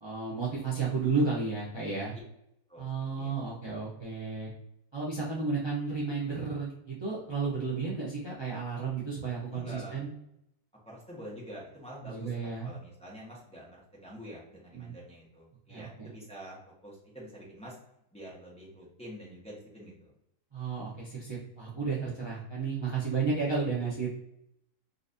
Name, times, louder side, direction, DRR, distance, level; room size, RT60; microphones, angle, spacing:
voice 1, 0.0-2.2 2.8-4.5 4.9-10.1 12.0-12.7 14.7-14.9 15.7-16.1 20.5-24.2, right 4 dB, 40° right, -6 dB, 0.4 m, -32 dB
voice 2, 3.2-3.6 9.5-10.0 10.8-16.6 16.8-17.8 18.1-20.1, equal, 5° left, -5 dB, 0.7 m, -47 dB
3.9 x 2.5 x 2.5 m, 0.78 s
omnidirectional pair, 1.7 m